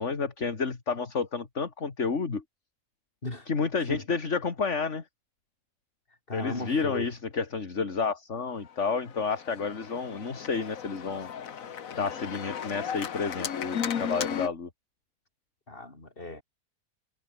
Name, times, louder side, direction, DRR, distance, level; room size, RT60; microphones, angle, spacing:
voice 1, 0.0-2.4 3.5-5.0 6.3-11.3 11.9-14.7, left 5 dB, 55° left, 2.6 m, -30 dB
voice 2, 6.3-7.1 15.7-16.4, left 2 dB, 40° left, 4.4 m, -37 dB
Organ, 8.7-14.5, left 8 dB, 70° left, 1.6 m, -35 dB
omnidirectional pair, 1.5 m